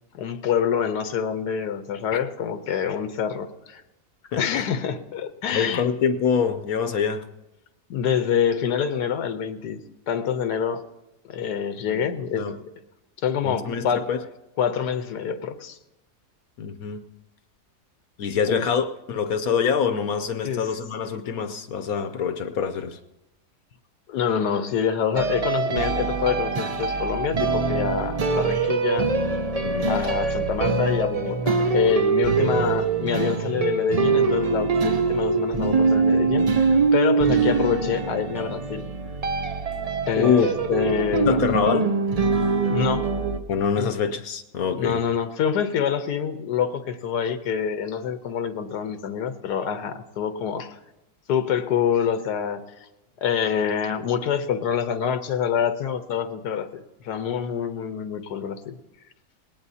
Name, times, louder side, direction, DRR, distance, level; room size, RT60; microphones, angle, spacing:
voice 1, 0.1-3.8 4.4-5.8 7.9-10.8 11.3-12.5 13.2-14.1 14.6-15.8 18.5-18.6 20.4-20.7 24.1-29.1 29.9-38.8 40.1-40.4 40.7-41.5 42.7-43.1 43.8-43.9 44.7-50.8 51.3-52.6 53.2-58.7, left 7 dB, 90° left, 9 dB, 1.4 m, -26 dB
voice 2, 4.3-4.6 5.5-7.2 11.8-12.6 13.4-14.2 16.6-17.0 18.2-23.0 29.6-29.9 40.2-40.5 41.3-41.9 43.5-45.0, left 6 dB, 70° left, 9 dB, 1.1 m, -25 dB
sound 1, 25.1-43.4, right 4 dB, 65° right, 0.3 m, -23 dB
19.0 x 18.0 x 2.8 m, 0.96 s
omnidirectional pair, 1.7 m